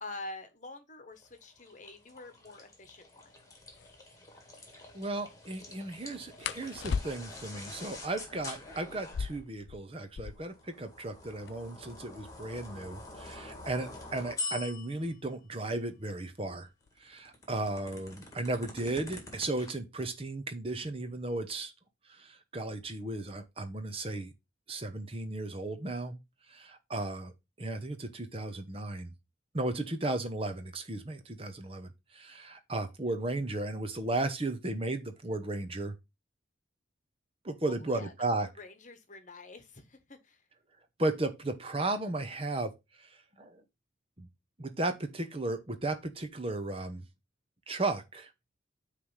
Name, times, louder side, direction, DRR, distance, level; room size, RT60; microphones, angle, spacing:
voice 1, 0.0-3.4 37.7-38.1 38.6-40.4, left 2 dB, 40° left, 1.2 m, -46 dB
sound 1, 1.2-9.5 10.4-15.2 16.8-19.7, left 2 dB, 15° left, 1.9 m, -45 dB
sound 2, 3.7-3.9 6.4-7.5 9.0-10.6 10.9-11.0 11.2-11.8 12.4-15.0 16.0-16.3 16.7-17.2 17.5-18.2, left 6 dB, 65° left, 0.4 m, -39 dB
voice 2, 4.9-16.7 17.0-21.7 22.1-24.3 24.7-26.2 26.5-27.3 27.6-29.1 29.5-35.9 37.4-38.5 41.0-43.6 44.2-44.3 44.6-47.0 47.7-48.3, right 2 dB, 30° right, 0.9 m, -35 dB
9.3 x 3.3 x 5.5 m
head